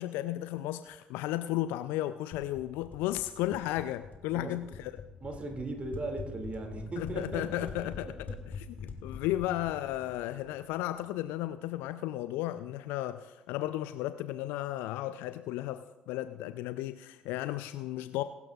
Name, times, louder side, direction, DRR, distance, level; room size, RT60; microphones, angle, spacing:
voice 1, 0.0-5.0 7.0-8.1 8.5-18.2, left 14 dB, 65° left, 11 dB, 0.4 m, -34 dB
sound 1, 2.3-11.0, left 5 dB, 45° left, 1.7 m, -45 dB
voice 2, 5.2-7.9, right 2 dB, 35° right, 4 dB, 2.4 m, -38 dB
22.0 x 12.0 x 2.4 m, 1.1 s
figure-of-eight pair, 50°, 4 cm